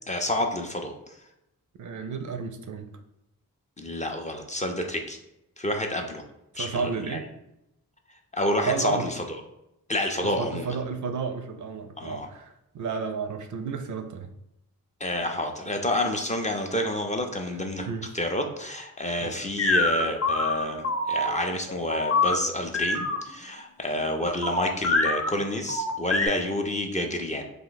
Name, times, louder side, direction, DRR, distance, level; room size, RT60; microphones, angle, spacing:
voice 1, 0.1-1.2 3.8-5.2 5.6-6.2 6.6-7.2 8.3-9.2 9.9-10.7 12.0-12.3 15.0-17.9 18.1-27.4, left 1 dB, 20° left, 3 dB, 0.4 m, -29 dB
voice 2, 1.8-3.0 6.5-7.3 8.7-9.1 10.2-14.3 17.9-18.1 19.2-19.3, right 5 dB, 55° right, 7 dB, 0.4 m, -32 dB
sound 1, 19.6-23.2 24.4-25.3 25.7-26.3, left 2 dB, 40° left, 0.8 m, -25 dB
2.6 x 2.1 x 3.9 m, 0.87 s
cardioid pair, 55°, 36 cm